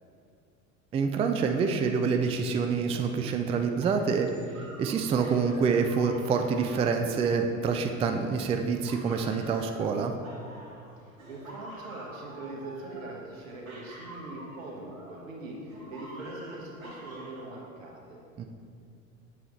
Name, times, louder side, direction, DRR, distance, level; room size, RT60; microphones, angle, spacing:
voice 1, 0.9-10.1 18.4-18.5, right 5 dB, 15° right, 5 dB, 0.4 m, -27 dB
sound 1, 2.9-7.9 8.4-10.9 11.2-15.3 15.7-17.5, right 1 dB, 90° right, 1.5 m, -48 dB
voice 2, 11.0-18.2, right 2 dB, 70° right, -1 dB, 1.5 m, -42 dB
7.6 x 7.3 x 3.2 m, 2.4 s
figure-of-eight pair, 70°, 41 cm